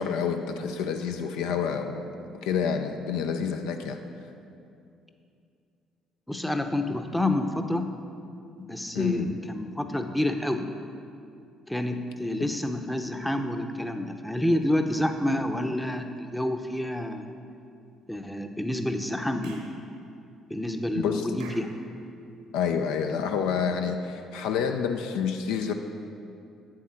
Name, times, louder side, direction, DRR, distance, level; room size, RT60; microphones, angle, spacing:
voice 1, 0.0-4.0 8.9-9.4 12.4-12.5 20.9-21.3 22.5-25.7, left 6 dB, 75° left, 6 dB, 0.4 m, -28 dB
voice 2, 6.3-7.9 8.6-10.7 11.7-17.2 18.1-19.6 20.5-21.7, left 1 dB, 5° left, 6 dB, 0.7 m, -28 dB
Clapping / Chirp tweet, 19.4-19.8 21.4-21.7, right 4 dB, 80° right, 1.0 m, -46 dB
7.7 x 7.3 x 4.3 m, 2.5 s
hypercardioid pair, 55°, 0 cm